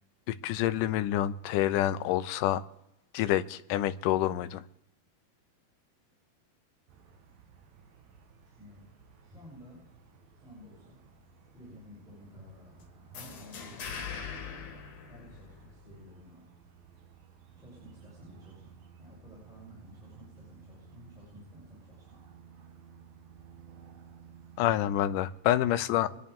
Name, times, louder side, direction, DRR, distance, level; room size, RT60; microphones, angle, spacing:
voice 1, 0.3-2.6 3.1-4.6 24.6-26.1, left 13 dB, 80° left, 12 dB, 1.9 m, -27 dB
sound 1, 6.9-25.3, right 6 dB, 75° right, 3.1 m, -56 dB
voice 2, 8.4-8.9 9.2-9.9 10.4-11.0 11.5-14.3 15.1-16.5 17.5-22.2 25.4-25.5 26.0-26.3, equal, ahead, -8 dB, 6.9 m, -53 dB
sound 2, 13.1-15.9, left 6 dB, 60° left, 3.0 m, -41 dB
25.0 x 11.0 x 3.6 m, 0.87 s
omnidirectional pair, 4.3 m